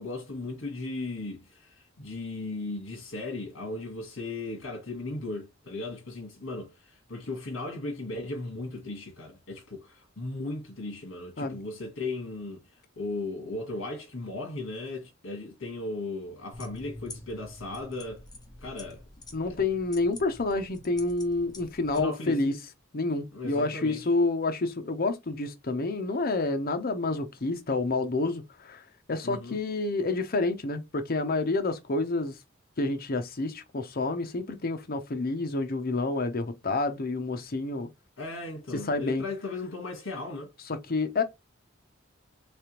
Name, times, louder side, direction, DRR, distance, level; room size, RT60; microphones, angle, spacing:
voice 1, 0.0-12.6 13.0-18.2 18.6-19.0 21.9-22.4 23.3-24.0 29.2-29.6 38.2-40.5, left 2 dB, 80° left, 1.3 m, -36 dB
sound 1, 16.5-22.0, left 2 dB, 20° left, 0.8 m, -46 dB
voice 2, 19.3-22.6 22.9-28.8 29.1-32.4 32.8-37.9 38.9-39.3 40.7-41.2, left 3 dB, 50° left, 0.7 m, -29 dB
3.4 x 3.3 x 2.9 m
head